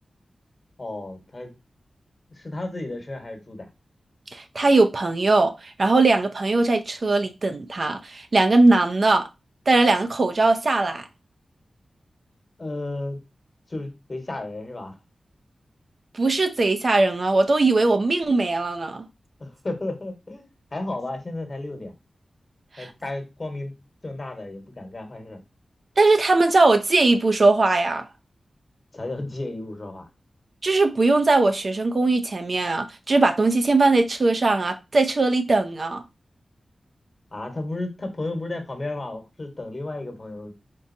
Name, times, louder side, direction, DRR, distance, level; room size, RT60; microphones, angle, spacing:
voice 1, 0.8-1.5 2.3-3.7 12.6-13.2 13.7-15.0 19.4-21.9 22.8-23.7 24.0-25.4 28.9-30.1 37.3-40.5, left 2 dB, 40° left, 1.2 m, -33 dB
voice 2, 4.3-9.3 9.7-11.1 16.1-19.0 22.8-22.9 26.0-28.0 30.6-36.0, right 3 dB, 50° right, 0.5 m, -20 dB
4.0 x 3.7 x 2.6 m
wide cardioid pair, 75°, 0 cm